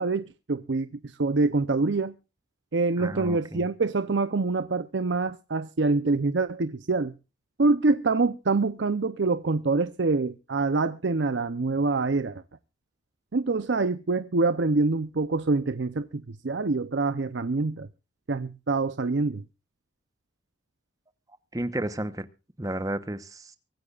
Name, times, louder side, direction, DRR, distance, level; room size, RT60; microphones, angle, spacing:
voice 1, 0.0-2.1 2.7-7.1 7.6-12.4 13.3-17.9 18.3-19.4, right 3 dB, 80° right, 0.7 m, -25 dB
voice 2, 3.0-3.6 21.5-22.2 22.6-23.2, right 1 dB, 20° right, 0.9 m, -31 dB
24.0 x 13.5 x 2.4 m
head